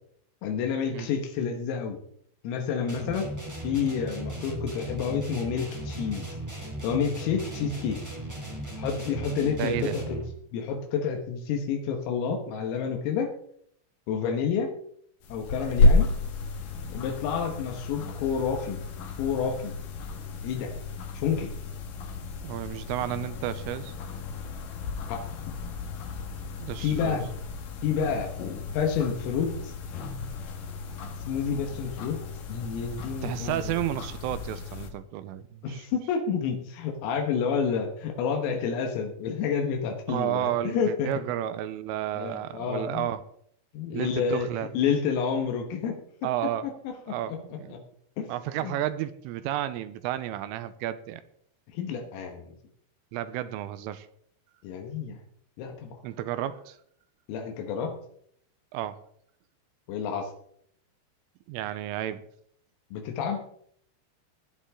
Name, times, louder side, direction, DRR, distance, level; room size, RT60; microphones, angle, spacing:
voice 1, 0.4-2.0 2.4-3.3 3.6-6.3 6.8-8.0 8.7-10.2 10.5-13.3 14.1-14.7 15.3-16.1 16.9-18.8 19.2-19.8 20.4-20.7 21.1-21.5 25.1-25.5 26.8-27.3 27.8-28.3 28.7-29.7 31.3-32.2 32.5-33.8 35.6-41.1 42.2-43.1 43.7-44.5 44.7-47.8 48.2-48.3 48.6-48.8 51.7-52.6 54.6-55.2 55.6-56.0 57.3-57.9 59.9-60.3 62.9-63.4, left 6 dB, 85° left, 3 dB, 4.1 m, -29 dB
sound 1, 2.9-10.4, right 1 dB, 15° right, 0.7 m, -37 dB
voice 2, 9.6-10.0 22.4-23.9 26.6-27.2 33.2-35.8 40.1-43.2 43.9-44.7 46.2-46.7 47.1-47.8 48.3-51.2 53.1-54.1 56.0-56.8 58.7-59.0 61.5-62.2, right 12 dB, 85° right, 13 dB, 3.2 m, -32 dB
sound 2, 15.2-34.9, left 2 dB, 65° left, 2.3 m, -31 dB
20.0 x 10.0 x 3.7 m, 0.66 s
omnidirectional pair, 5.9 m